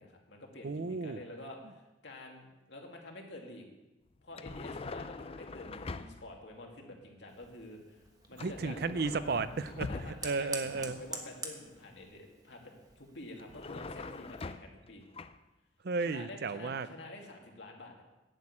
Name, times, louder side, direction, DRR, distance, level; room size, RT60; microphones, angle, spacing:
voice 1, 0.0-3.6 4.2-8.0 8.3-8.8 9.9-15.0 16.0-18.0, left 2 dB, 70° left, 1 dB, 2.4 m, -49 dB
voice 2, 0.6-1.2 8.4-9.9 10.2-11.0 15.8-16.9, right 4 dB, 60° right, 13 dB, 0.5 m, -33 dB
sound 1, 4.3-6.4 8.4-10.5 13.4-14.9 15.1-15.4, left 3 dB, 30° left, 0.5 m, -43 dB
Fire, 7.3-14.5, right 3 dB, 20° right, 1.4 m, -48 dB
11.0 x 6.3 x 8.6 m, 1.1 s
head